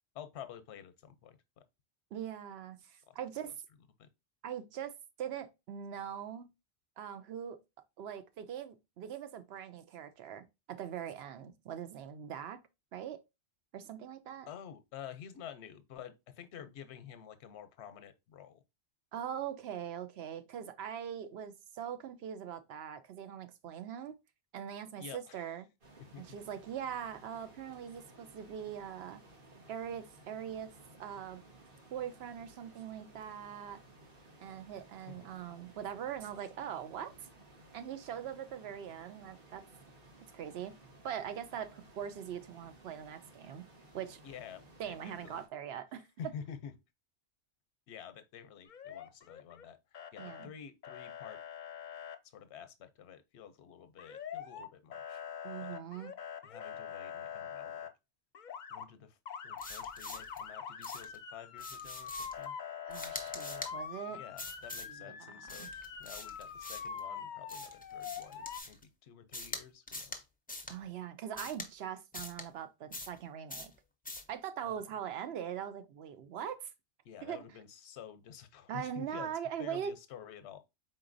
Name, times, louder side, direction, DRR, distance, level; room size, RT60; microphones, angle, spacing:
voice 1, 0.1-1.6 3.1-3.2 4.0-4.1 14.5-18.6 25.0-25.5 26.0-26.4 35.1-35.3 44.2-45.4 45.9-46.7 47.9-49.8 50.1-51.4 52.2-55.2 55.6-55.8 56.4-57.9 58.7-59.2 59.4-62.5 64.1-65.7 66.0-70.2 74.6-74.8 77.0-79.3 79.6-80.6, left 8 dB, 90° left, 0.9 m, -50 dB
voice 2, 2.1-3.5 4.4-4.9 5.2-6.5 7.0-7.6 8.0-12.6 12.9-13.2 13.7-14.5 19.1-24.1 24.5-25.6 26.2-29.2 29.7-30.7 31.0-31.4 31.9-33.8 34.4-37.3 37.7-39.6 40.3-40.8 41.0-43.7 43.9-44.2 44.8-46.1 50.2-50.5 55.4-56.1 62.9-64.2 65.0-65.3 65.6-65.7 70.7-73.7 74.3-76.7 77.2-77.4 78.7-79.9, right 9 dB, 75° right, 0.8 m, -42 dB
sound 1, 25.8-45.5, right 1 dB, 55° right, 1.4 m, -58 dB
Motor vehicle (road) / Siren, 48.7-49.6 49.9-50.5 50.8-52.2 54.0-54.7 54.9-57.9 58.3-58.9 59.3-68.6, left 7 dB, 55° left, 0.6 m, -44 dB
sound 2, 59.6-60.4 60.8-61.2 61.6-62.4 62.9-63.7 64.4-64.9 65.5-67.0 67.5-68.8 69.3-69.6 69.9-70.2 70.5-70.8 71.4-71.7 72.1-72.5 72.9-73.2 73.5-73.7 74.1-74.3, left 2 dB, 15° left, 0.3 m, -44 dB
4.4 x 3.8 x 2.5 m
omnidirectional pair, 1.1 m